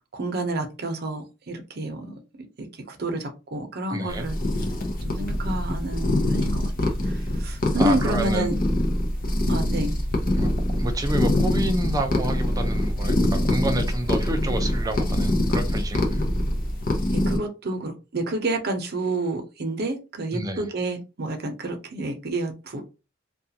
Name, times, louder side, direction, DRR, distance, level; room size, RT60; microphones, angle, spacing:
voice 1, 0.1-4.4 5.0-6.7 7.0-8.6 9.5-9.9 17.1-22.8, right 2 dB, 55° right, 0.7 m, -29 dB
voice 2, 3.9-4.3 7.8-8.6 10.4-16.3 20.3-20.7, right 1 dB, 20° right, 0.5 m, -29 dB
sound 1, 4.1-17.4, left 1 dB, 50° left, 0.7 m, -24 dB
2.4 x 2.3 x 2.8 m
head